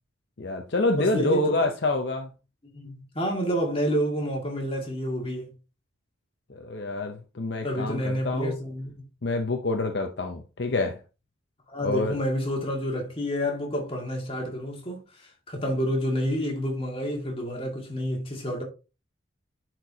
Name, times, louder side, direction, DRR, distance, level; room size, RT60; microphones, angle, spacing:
voice 1, 0.4-2.3 6.5-8.6 9.2-11.0 11.8-12.2, left 2 dB, 55° left, 0.7 m, -27 dB
voice 2, 1.0-1.7 2.7-5.5 7.6-8.9 11.7-18.6, equal, 30° left, 1.9 m, -29 dB
10.0 x 4.5 x 2.8 m
head